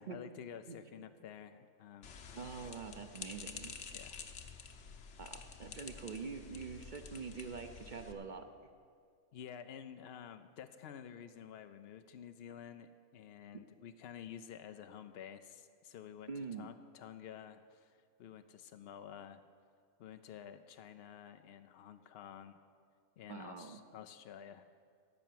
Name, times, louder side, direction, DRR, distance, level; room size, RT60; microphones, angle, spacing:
voice 1, 0.0-2.1 3.9-4.2 9.3-19.4 20.0-22.6 23.2-24.7, left 8 dB, 75° left, 9 dB, 0.5 m, -51 dB
sound 1, 2.0-8.1, left 6 dB, 55° left, 1.1 m, -50 dB
voice 2, 2.3-3.7 5.2-8.4 16.3-16.7 23.3-23.8, right 5 dB, 50° right, 6 dB, 0.6 m, -45 dB
14.0 x 5.7 x 9.2 m, 2.3 s
omnidirectional pair, 1.6 m